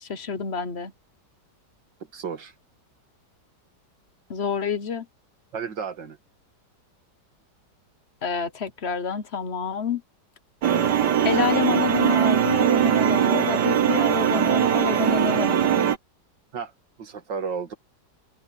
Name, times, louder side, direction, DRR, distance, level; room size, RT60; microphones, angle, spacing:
voice 1, 0.0-0.9 4.3-5.1 8.2-10.0 11.2-15.6, left 6 dB, 40° left, 1.2 m, -28 dB
voice 2, 2.1-2.5 5.5-6.2 16.5-16.7 17.0-17.7, right 6 dB, 90° right, 2.6 m, -32 dB
sound 1, 10.6-16.0, right 9 dB, 70° right, 2.0 m, -21 dB
omnidirectional pair, 1.9 m